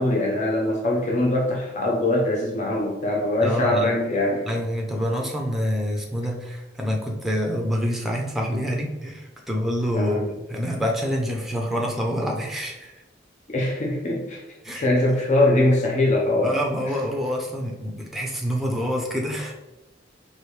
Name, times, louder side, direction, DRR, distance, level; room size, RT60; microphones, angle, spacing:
voice 1, 0.0-4.5 9.9-10.3 13.5-14.4 14.7-16.6, left 1 dB, 40° left, -2 dB, 0.6 m, -22 dB
voice 2, 3.4-3.9 4.5-12.9 14.6-14.8 16.4-19.5, equal, ahead, 0 dB, 0.6 m, -27 dB
4.8 x 2.7 x 3.2 m, 1.0 s
head